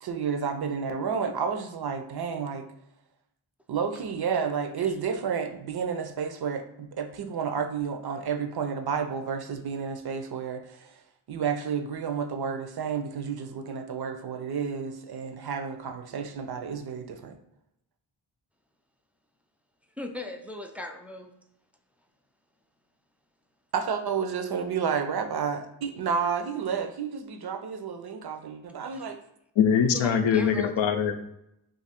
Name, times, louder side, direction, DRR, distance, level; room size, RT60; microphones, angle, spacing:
voice 1, 0.0-2.7 3.7-11.0 11.3-17.4 23.7-29.2, right 6 dB, 55° right, 6 dB, 0.5 m, -31 dB
voice 2, 20.0-21.3 28.9-29.1 29.9-30.7, left 1 dB, 5° right, 3 dB, 0.3 m, -38 dB
voice 3, 29.6-31.1, left 7 dB, 70° left, 7 dB, 0.5 m, -22 dB
2.6 x 2.4 x 4.2 m, 0.79 s
cardioid pair, 45°, 47 cm